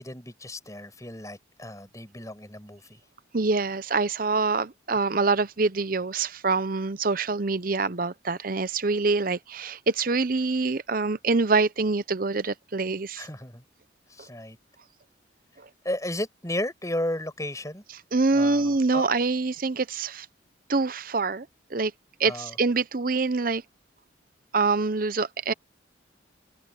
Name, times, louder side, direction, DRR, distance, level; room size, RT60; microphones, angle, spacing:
voice 1, 0.0-3.0 13.2-13.6 14.1-14.6 15.8-17.8 18.3-19.0 22.2-22.5, left 1 dB, 15° left, 6.1 m, -34 dB
voice 2, 3.3-13.3 18.1-20.3 20.7-21.9 22.2-23.6 24.5-25.5, right 3 dB, 45° right, 0.8 m, -25 dB
head